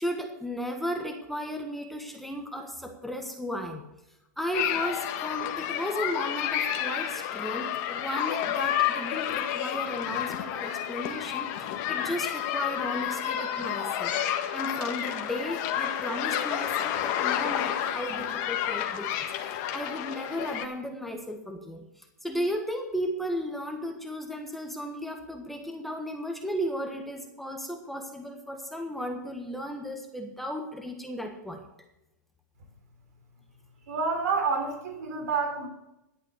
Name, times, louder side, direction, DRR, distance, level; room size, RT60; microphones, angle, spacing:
voice 1, 0.0-3.9 4.4-14.1 14.5-31.7, equal, ahead, 3 dB, 1.3 m, -35 dB
sound 1, 4.5-20.6, left 10 dB, 45° left, 1.5 m, -30 dB
voice 2, 33.9-35.7, right 4 dB, 70° right, 5 dB, 3.5 m, -28 dB
12.0 x 8.5 x 6.6 m, 0.93 s
hypercardioid pair, 130°, 10 cm